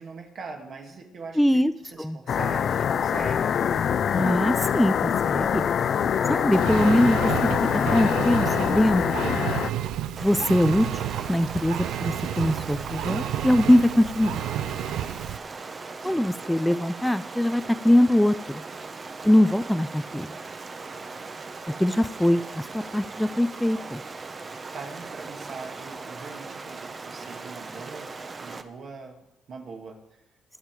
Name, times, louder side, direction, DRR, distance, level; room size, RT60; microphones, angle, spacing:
voice 1, 0.0-3.5 16.0-16.2 24.7-28.1 28.4-29.2 29.5-30.0, right 4 dB, 60° right, 2 dB, 2.6 m, -41 dB
voice 2, 1.4-1.7 2.0-2.2 4.1-5.7 6.3-7.3 7.9-9.2 10.2-11.0 11.3-14.4 16.0-18.6 19.2-20.3 21.8-24.0, left 1 dB, 5° left, 12 dB, 0.5 m, -22 dB
sound 1, 2.3-9.7, left 8 dB, 60° left, 0.5 m, -24 dB
Engine, 6.5-15.4, right 11 dB, 85° right, 0.6 m, -31 dB
Stream, 10.2-28.6, right 4 dB, 35° right, 1.0 m, -39 dB
21.5 x 7.3 x 4.8 m, 0.86 s
cardioid pair, 90°, 0 cm